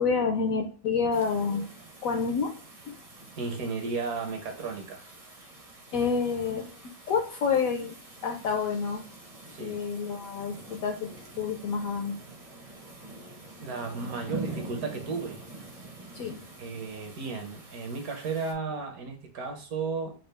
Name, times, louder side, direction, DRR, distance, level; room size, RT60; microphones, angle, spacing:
voice 1, 0.0-1.7 2.0-2.6 2.9-3.0 5.9-8.0 8.2-9.0 9.6-12.2 16.1-16.4, left 5 dB, 70° left, 0.8 m, -28 dB
sound 1, 1.1-18.5, right 2 dB, 40° right, 0.5 m, -45 dB
voice 2, 3.4-5.1 9.5-9.8 13.6-15.4 16.6-20.1, right 4 dB, 65° right, 1.1 m, -34 dB
4.2 x 2.3 x 3.2 m
omnidirectional pair, 1.9 m